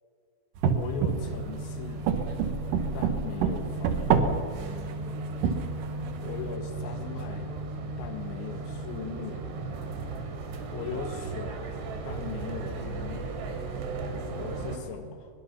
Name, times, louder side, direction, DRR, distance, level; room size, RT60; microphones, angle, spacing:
sound 1, 0.6-1.6 2.1-4.5 4.9-6.4, right 6 dB, 70° right, 2.1 m, -27 dB
voice 1, 0.7-2.1 2.9-4.5 6.2-7.5 8.0-9.4 10.7-11.6 12.1-13.3 14.4-15.3, left 6 dB, 75° left, 6 dB, 3.7 m, -39 dB
sound 2, 1.1-14.8, right 3 dB, 85° right, 4.7 m, -36 dB
23.5 x 22.0 x 5.8 m, 2.3 s
omnidirectional pair, 5.4 m